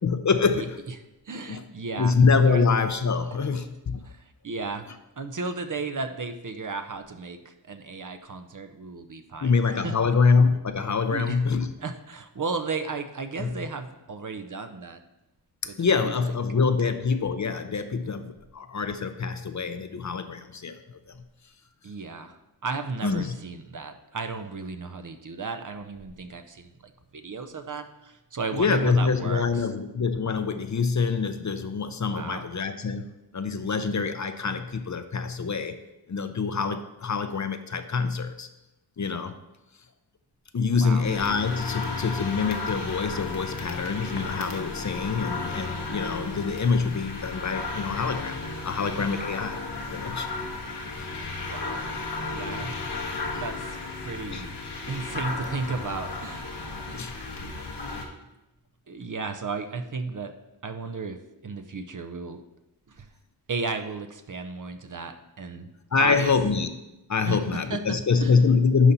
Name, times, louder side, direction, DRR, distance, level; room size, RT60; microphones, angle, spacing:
voice 1, 0.0-0.7 1.5-1.6 2.0-4.1 9.4-11.7 13.4-13.5 15.8-20.8 23.0-23.4 28.5-33.1 33.3-35.8 36.1-38.5 39.0-39.4 40.5-48.4 48.6-49.6 49.9-50.3 51.0-51.3 53.3-53.4 54.3-54.4 56.9-57.1 65.9-66.7 67.1-68.9, left 5 dB, 45° left, 9 dB, 0.6 m, -25 dB
voice 2, 1.3-2.1 2.4-2.6 3.3-3.4 4.0-4.9 5.2-9.9 11.1-11.4 11.8-15.0 15.6-16.3 21.8-29.7 32.1-32.5 40.8-41.1 51.4-51.8 52.3-53.1 53.3-54.6 54.9-56.5 56.8-57.0 58.9-60.3 60.6-62.4 62.9-63.1 63.5-65.7 66.0-66.3 67.2-68.4, right 4 dB, 50° right, 8 dB, 0.7 m, -34 dB
sound 1, 41.0-58.0, left 3 dB, 80° left, 1.2 m, -34 dB
11.0 x 4.2 x 4.1 m, 0.97 s
wide cardioid pair, 65°, 40 cm